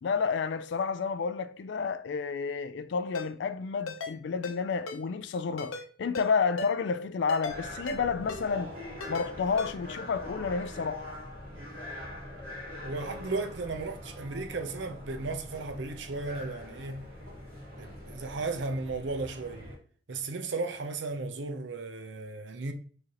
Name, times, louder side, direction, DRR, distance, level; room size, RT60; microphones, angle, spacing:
voice 1, 0.0-8.8 9.1-11.0, left 5 dB, 60° left, 0.3 m, -30 dB
Ringtone, 3.1-3.3 3.9-4.1 4.4-4.6 4.9-5.0 5.6-5.8 6.1-6.3 6.6-6.7 7.3-7.6 7.9-8.0 8.3-8.4 9.0-9.3 9.6-9.7, left 2 dB, 90° left, 0.8 m, -36 dB
sound 1, 7.5-19.8, left 1 dB, 45° right, 1.8 m, -43 dB
voice 2, 12.8-17.1 17.8-19.7 20.1-22.7, right 3 dB, 60° right, 0.6 m, -35 dB
4.7 x 3.2 x 2.9 m
head